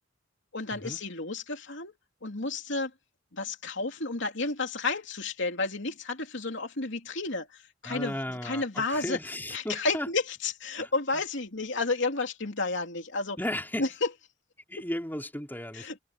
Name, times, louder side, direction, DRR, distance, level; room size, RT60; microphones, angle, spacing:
voice 1, 0.5-1.9 2.2-2.9 3.3-9.2 9.5-13.4 13.8-14.1 14.8-14.9 15.7-16.0, left 3 dB, 65° left, 3.1 m, -31 dB
voice 2, 7.9-10.1 10.8-10.9 13.4-13.9 14.7-16.0, left 1 dB, 10° left, 3.6 m, -35 dB
head